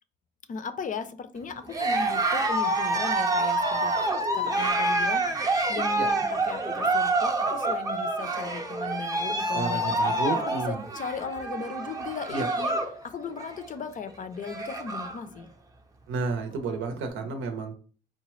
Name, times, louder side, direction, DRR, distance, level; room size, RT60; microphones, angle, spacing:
voice 1, 0.5-3.9 4.3-12.7 13.0-15.5, left 5 dB, 40° left, 10 dB, 0.4 m, -37 dB
Cheering, 1.7-13.0 13.3-13.7 14.1-14.2 14.4-15.2, right 2 dB, 20° right, 0.6 m, -27 dB
voice 2, 9.5-10.9 12.3-12.5 16.1-17.7, right 4 dB, 85° right, 5 dB, 0.7 m, -31 dB
3.9 x 2.1 x 3.0 m, 0.41 s
cardioid pair, 90°, 20 cm